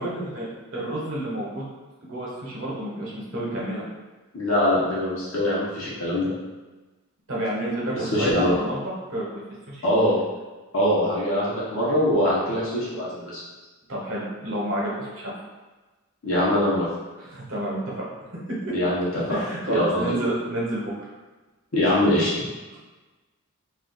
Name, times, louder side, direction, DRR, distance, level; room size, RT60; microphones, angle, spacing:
voice 1, 0.0-1.7 2.1-3.9 7.3-8.8 9.1-9.3 9.7-9.9 13.9-15.3 17.2-18.0 19.3-21.1 22.7-22.8, right 1 dB, 65° right, -5 dB, 0.8 m, -29 dB
voice 2, 4.3-6.3 8.1-8.6 9.8-10.2 10.7-13.4 16.2-16.9 18.7-19.4 19.7-20.2 21.7-22.3, left 1 dB, 60° left, -7 dB, 0.8 m, -23 dB
2.4 x 2.3 x 3.7 m, 1.2 s
head